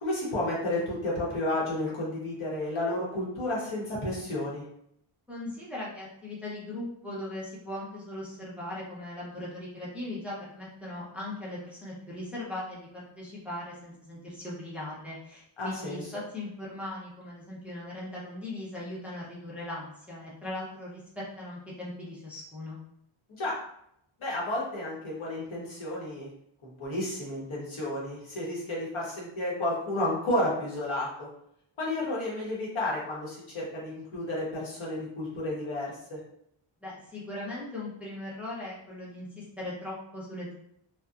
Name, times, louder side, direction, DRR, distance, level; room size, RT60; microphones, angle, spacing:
voice 1, 0.0-4.6 15.6-16.1 23.3-23.6 24.2-26.3 26.6-31.3 31.8-36.2, left 1 dB, 75° left, -5 dB, 1.1 m, -32 dB
voice 2, 5.3-22.8 36.8-40.5, left 1 dB, 5° right, -7 dB, 0.7 m, -39 dB
2.7 x 2.2 x 2.4 m, 0.73 s
wide cardioid pair, 115°, 49 cm